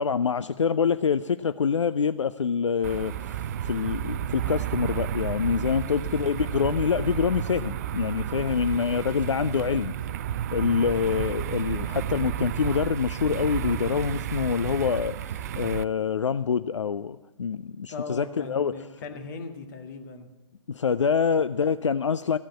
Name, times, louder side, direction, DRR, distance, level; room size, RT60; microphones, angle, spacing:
voice 1, 0.0-9.9 10.5-18.9 20.7-22.4, left 6 dB, 75° left, 0.4 m, -26 dB
sound 1, 2.8-15.8, right 11 dB, 35° right, 0.4 m, -32 dB
voice 2, 17.9-20.3, left 4 dB, 40° left, 1.7 m, -39 dB
15.0 x 7.4 x 8.6 m
figure-of-eight pair, 125°, 16 cm